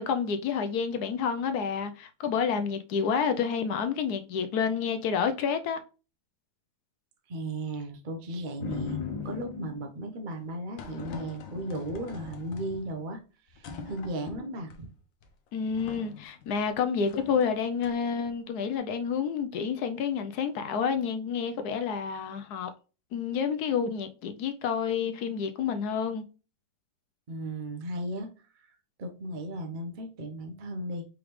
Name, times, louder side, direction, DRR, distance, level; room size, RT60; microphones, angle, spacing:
voice 1, 0.0-5.8 15.5-22.7 23.1-26.2, left 6 dB, 70° left, 1.0 m, -29 dB
voice 2, 7.3-13.2 13.5-14.9 27.3-28.3 28.6-28.7 29.0-31.1, right 1 dB, 50° right, 0.6 m, -36 dB
sound 1, 8.6-9.9 10.8-13.1 13.5-14.8 15.2-15.3 15.7-16.7 17.1-17.4 17.8-18.3, left 6 dB, 90° left, 1.5 m, -40 dB
4.9 x 3.5 x 3.1 m
omnidirectional pair, 2.0 m